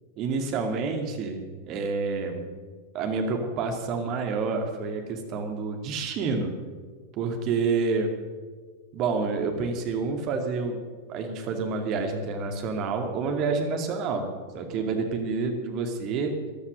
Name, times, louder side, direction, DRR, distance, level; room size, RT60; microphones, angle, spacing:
voice 1, 0.2-2.4 2.9-6.5 7.2-8.1 8.9-10.8 11.1-14.3 14.5-16.3, right 4 dB, 40° right, 4 dB, 2.3 m, -28 dB
14.0 x 11.5 x 6.6 m, 1.5 s
figure-of-eight pair, 90°, 0 cm